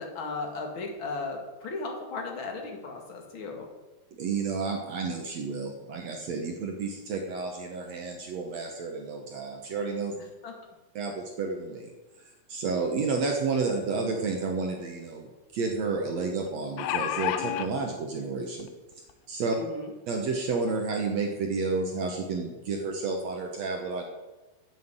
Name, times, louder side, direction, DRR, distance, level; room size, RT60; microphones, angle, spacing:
voice 1, 0.0-3.7 10.2-10.5 19.6-19.9, left 3 dB, 40° left, 1 dB, 2.2 m, -36 dB
voice 2, 4.2-10.1 11.0-11.9 12.5-18.7 19.3-19.6 20.1-24.0, right 4 dB, 65° right, 2 dB, 1.8 m, -31 dB
sound 1, 14.4-14.5 14.8-14.9 16.5-17.7 18.6-18.7 19.1-19.2, left 11 dB, 80° left, 2.6 m, -29 dB
10.0 x 8.0 x 8.1 m, 1.1 s
omnidirectional pair, 4.4 m